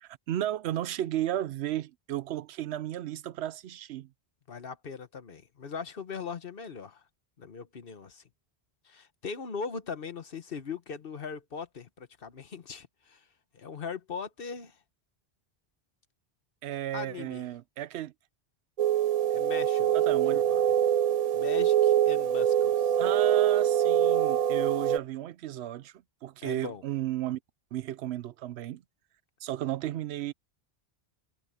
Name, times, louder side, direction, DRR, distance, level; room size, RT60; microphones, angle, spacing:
voice 1, 0.0-4.1 16.6-18.1 19.9-20.4 23.0-25.9 26.2-27.4 27.7-28.8 29.4-30.3, right 12 dB, 85° right, 0.8 m, -34 dB
voice 2, 4.5-7.0 7.4-8.2 8.8-13.2 13.5-14.8 16.9-17.5 19.3-20.0 20.3-20.7 21.3-23.0 26.4-26.8, left 5 dB, 60° left, 1.3 m, -40 dB
sound 1, 18.8-25.0, right 10 dB, 55° right, 0.4 m, -24 dB
omnidirectional pair, 1.1 m